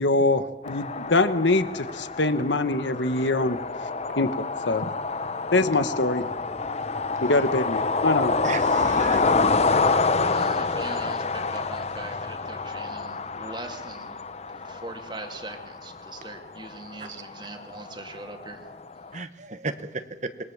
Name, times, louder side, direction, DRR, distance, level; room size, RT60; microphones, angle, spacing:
voice 1, 0.0-3.6 4.2-4.3 4.7-4.9 5.5-6.3 7.2-8.3, left 2 dB, 70° left, 11 dB, 1.3 m, -23 dB
sound 1, 0.6-19.2, left 4 dB, 35° left, 0.8 m, -28 dB
voice 2, 8.4-9.4 17.0-17.2 19.1-20.3, right 4 dB, 40° right, 9 dB, 1.3 m, -35 dB
voice 3, 10.2-14.1 14.6-18.6, right 2 dB, 25° right, 4 dB, 2.4 m, -41 dB
27.0 x 21.5 x 7.3 m, 1.2 s
head